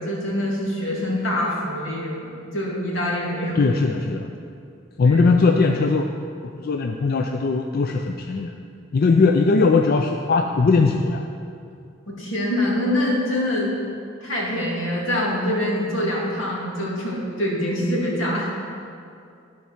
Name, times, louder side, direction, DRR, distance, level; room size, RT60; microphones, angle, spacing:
voice 1, 0.0-3.7 5.0-5.3 12.1-13.7 14.2-18.5, left 1 dB, 80° left, -4 dB, 2.3 m, -25 dB
voice 2, 3.6-4.3 5.0-6.1 6.5-8.5 8.9-11.3, left 4 dB, 50° left, 4 dB, 0.4 m, -19 dB
12.0 x 4.6 x 5.9 m, 2.4 s
head